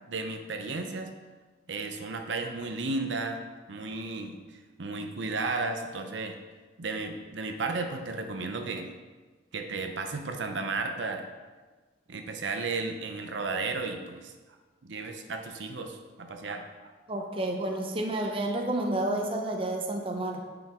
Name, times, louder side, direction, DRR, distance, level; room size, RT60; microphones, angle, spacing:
voice 1, 0.1-1.1 1.7-3.4 3.7-6.4 6.8-8.9 9.5-11.3 12.1-14.3 14.8-16.7, right 3 dB, 85° right, 5 dB, 0.7 m, -34 dB
voice 2, 17.1-20.4, right 1 dB, 30° right, 2 dB, 0.8 m, -30 dB
9.1 x 5.1 x 3.7 m, 1.3 s
head